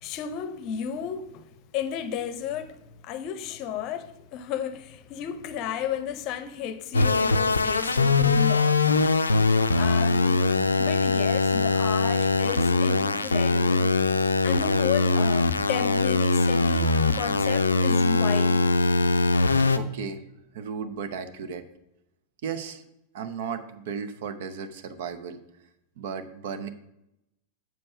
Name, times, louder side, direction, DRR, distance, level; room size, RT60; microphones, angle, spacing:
voice 1, 0.0-1.4 1.7-9.0 9.8-10.4 10.8-13.9 14.4-18.7, left 8 dB, 40° left, 0.7 m, -33 dB
sound 1, 6.9-19.8, left 3 dB, 75° left, 0.4 m, -22 dB
voice 2, 19.6-20.2 20.5-21.7 22.4-22.8 23.1-25.4 26.0-26.7, right 6 dB, 55° right, 0.7 m, -35 dB
7.7 x 4.6 x 5.9 m
figure-of-eight pair, 90°, 0 cm